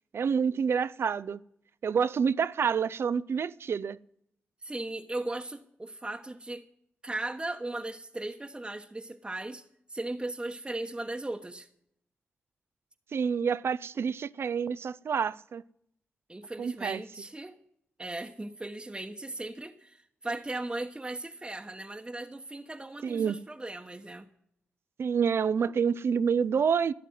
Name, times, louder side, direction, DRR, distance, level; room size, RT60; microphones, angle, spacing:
voice 1, 0.1-1.4 1.8-4.0 13.1-15.6 16.6-17.0 23.0-23.4 25.0-26.9, right 6 dB, 65° right, 0.5 m, -28 dB
voice 2, 4.6-6.7 7.0-11.7 16.3-17.6 18.0-24.3, right 2 dB, 20° right, 1.1 m, -37 dB
13.0 x 11.0 x 9.3 m
cardioid pair, 50°, 5 cm